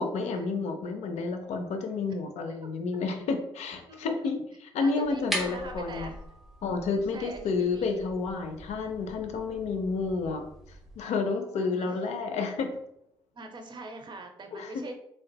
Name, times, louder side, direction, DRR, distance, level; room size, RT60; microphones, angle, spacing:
voice 1, 0.0-6.1 6.6-10.4 11.0-12.7 14.5-14.7, left 4 dB, 60° left, 5 dB, 0.5 m, -30 dB
voice 2, 3.9-4.4 4.8-6.2 7.1-8.0 11.2-11.9 13.3-15.0, right 3 dB, 35° right, 5 dB, 0.6 m, -43 dB
sound 1, 5.0-11.0, equal, ahead, 0.7 m, -41 dB
3.7 x 2.3 x 2.2 m, 0.78 s
hypercardioid pair, 45°, 13 cm